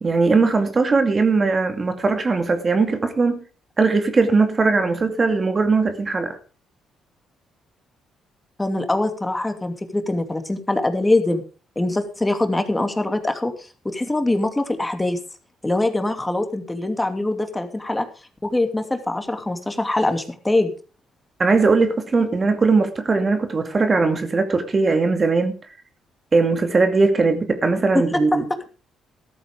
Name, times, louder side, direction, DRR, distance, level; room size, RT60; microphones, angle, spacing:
voice 1, 0.0-3.4 3.8-6.4 21.4-25.5 26.3-28.4, right 4 dB, 35° right, 2.4 m, -19 dB
voice 2, 8.6-11.4 11.8-15.2 15.6-18.1 18.4-20.7 27.9-28.0 28.3-28.7, left 2 dB, 15° left, 2.6 m, -23 dB
14.0 x 13.5 x 3.6 m
hypercardioid pair, 50°, 0 cm